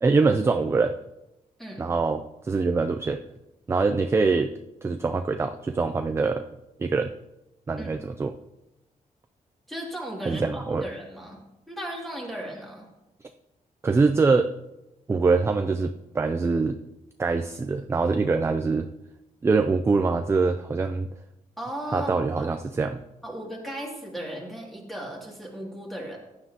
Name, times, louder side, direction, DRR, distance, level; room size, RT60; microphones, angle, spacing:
voice 1, 0.0-1.0 1.8-3.2 3.7-4.5 4.8-6.5 6.8-7.1 7.7-8.4 10.2-10.8 13.8-14.5 15.1-16.8 17.2-18.9 19.4-21.1 21.9-23.0, right 4 dB, 20° right, 7 dB, 0.3 m, -24 dB
voice 2, 9.7-11.4 11.7-12.9 21.6-22.5 23.2-26.2, right 1 dB, ahead, -2 dB, 2.4 m, -36 dB
15.0 x 9.7 x 2.8 m, 0.94 s
wide cardioid pair, 160°, 14 cm